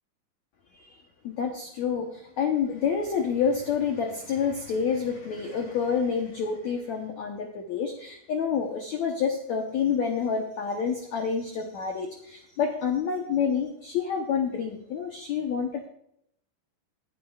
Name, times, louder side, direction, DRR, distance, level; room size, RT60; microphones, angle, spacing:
voice 1, 1.2-15.9, left 6 dB, 80° left, 3 dB, 1.6 m, -28 dB
18.5 x 10.5 x 2.5 m, 0.71 s
omnidirectional pair, 4.9 m